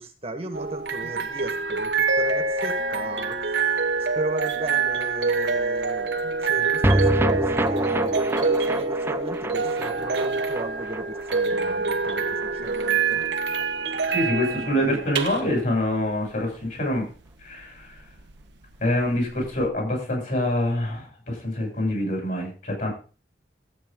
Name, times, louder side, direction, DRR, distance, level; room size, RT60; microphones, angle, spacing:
voice 1, 0.0-3.4 4.1-6.2 6.4-13.2 14.3-15.0, right 1 dB, 35° right, 7 dB, 1.5 m, -36 dB
sound 1, 0.5-19.7, right 4 dB, 85° right, 1.3 m, -26 dB
sound 2, 6.8-13.3 13.5-13.6 13.9-14.0, right 1 dB, 15° right, 0.6 m, -27 dB
voice 2, 14.1-17.0 17.4-17.9 18.8-22.9, left 1 dB, 50° left, 1 dB, 7.4 m, -25 dB
14.5 x 8.7 x 3.8 m, 0.35 s
head